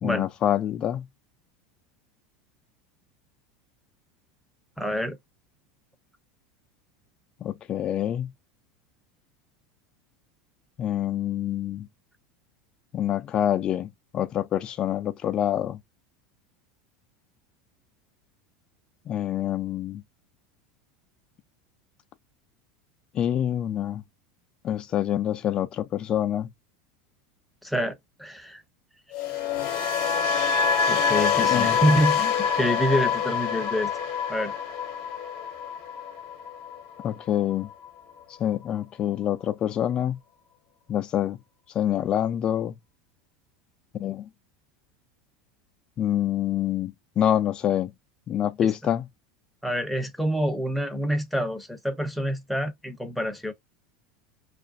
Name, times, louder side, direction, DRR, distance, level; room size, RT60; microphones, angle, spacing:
voice 1, 0.0-1.1 7.4-8.3 10.8-11.9 12.9-15.8 19.1-20.0 23.1-24.0 24.6-26.5 31.5-31.8 37.0-37.7 38.4-40.2 40.9-41.4 41.7-42.7 44.0-44.3 46.0-47.9 48.3-49.1, left 11 dB, 40° left, 0.4 m, -26 dB
voice 2, 4.8-5.2 27.6-28.6 30.9-33.9 34.3-34.5 48.6-48.7 49.6-53.5, equal, ahead, 0.6 m, -27 dB
sound 1, 29.1-37.2 37.5-37.9, left 6 dB, 55° left, 0.9 m, -26 dB
2.5 x 2.1 x 2.6 m
hypercardioid pair, 100°, 2 cm